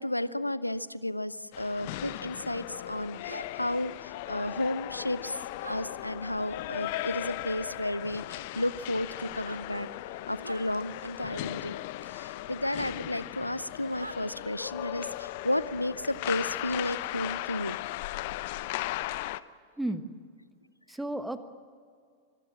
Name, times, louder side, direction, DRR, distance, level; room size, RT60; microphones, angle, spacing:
voice 1, 0.0-5.4 5.7-9.9 10.3-11.8 12.1-17.8, left 1 dB, 85° left, 17 dB, 0.7 m, -33 dB
sound 1, 1.5-19.4, left 16 dB, 50° left, 0.7 m, -37 dB
sound 2, 3.3-3.5 5.6-5.8 7.8-8.0 9.3-9.6 10.4-10.6 12.7-12.8 14.0-14.2, right 2 dB, 85° right, 0.7 m, -42 dB
voice 2, 19.8-20.1 20.9-21.4, right 1 dB, 5° right, 10 dB, 1.4 m, -33 dB
25.5 x 19.5 x 7.5 m, 2.2 s
figure-of-eight pair, 90°, 0 cm